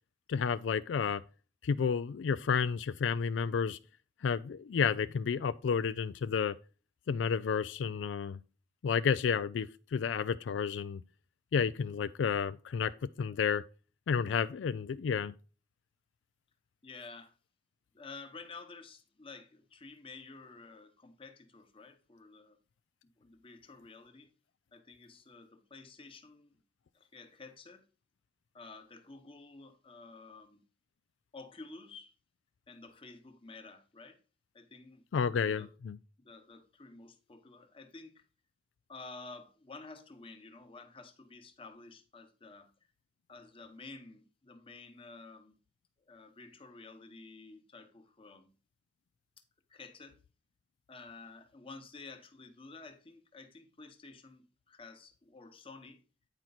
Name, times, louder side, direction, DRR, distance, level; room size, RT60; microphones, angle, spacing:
voice 1, 0.3-1.2 1.6-3.8 4.2-6.6 7.1-8.4 8.8-11.0 11.5-12.9 13.2-13.6 14.1-15.3 35.1-36.0, left 6 dB, 85° left, 0.4 m, -31 dB
voice 2, 16.8-17.4 17.9-22.6 23.2-24.3 24.7-26.5 26.9-27.9 28.5-30.6 31.3-32.1 32.7-34.2 34.5-35.0 35.3-35.7 36.2-38.2 38.9-42.7 43.3-45.5 46.1-48.5 49.7-50.2 50.9-56.0, left 3 dB, 30° left, 1.0 m, -51 dB
9.0 x 4.5 x 4.0 m
head